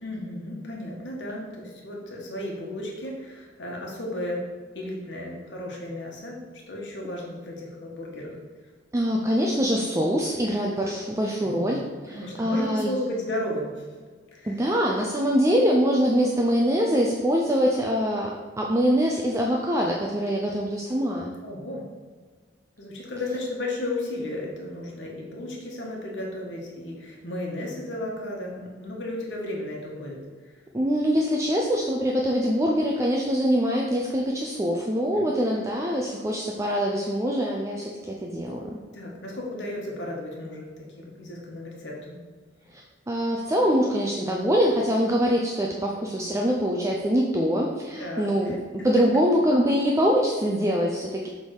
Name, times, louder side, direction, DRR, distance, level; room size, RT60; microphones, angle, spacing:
voice 1, 0.0-4.4 4.7-8.4 11.4-11.8 12.1-13.8 14.3-14.7 21.4-21.9 22.8-30.2 35.1-35.3 38.9-42.1 48.0-49.1, left 1 dB, 85° left, -2 dB, 1.4 m, -34 dB
voice 2, 8.9-11.8 12.1-12.9 14.5-21.3 30.7-38.8 43.1-48.6 48.8-51.3, equal, 15° right, -1 dB, 0.5 m, -24 dB
6.6 x 3.6 x 4.7 m, 1.5 s
head